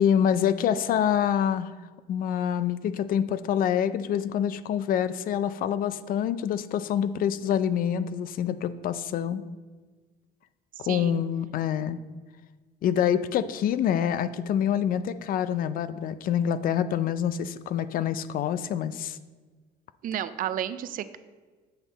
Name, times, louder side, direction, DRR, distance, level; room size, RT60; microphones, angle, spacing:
voice 1, 0.0-1.7 2.1-9.4 10.8-12.0 12.8-19.2, left 9 dB, 55° left, 14 dB, 0.4 m, -26 dB
voice 2, 10.8-11.2 20.0-21.2, right 10 dB, 55° right, 13 dB, 0.4 m, -32 dB
8.0 x 5.4 x 4.0 m, 1.4 s
cardioid pair, 110°, 17 cm